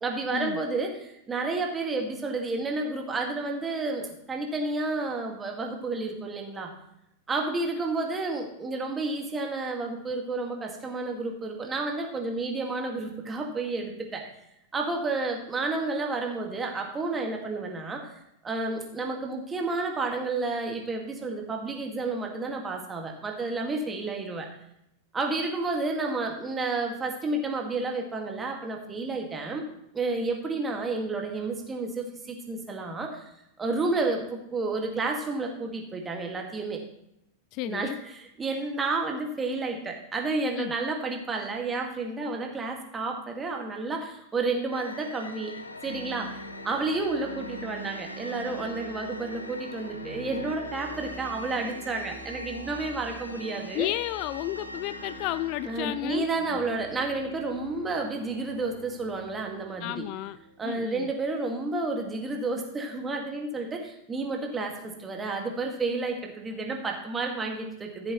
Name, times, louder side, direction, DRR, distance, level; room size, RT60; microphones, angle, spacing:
voice 1, 0.0-6.7 7.3-14.3 14.7-18.1 18.4-24.5 25.1-29.6 29.9-33.2 33.6-36.8 37.6-45.5 45.8-53.9 55.7-60.1 60.6-68.1, right 3 dB, 15° right, 2 dB, 1.9 m, -31 dB
voice 2, 37.5-38.0 40.6-40.7 53.7-56.3 59.8-60.4 60.6-61.1, left 16 dB, 40° left, 15 dB, 0.3 m, -32 dB
sound 1, 44.7-57.2, left 2 dB, 80° left, 0.8 m, -44 dB
sound 2, 45.8-61.3, right 2 dB, 70° right, 2.1 m, -45 dB
Bowed string instrument, 56.3-60.5, left 1 dB, 20° left, 2.0 m, -53 dB
14.5 x 7.7 x 3.1 m, 0.80 s
figure-of-eight pair, 90°, 0 cm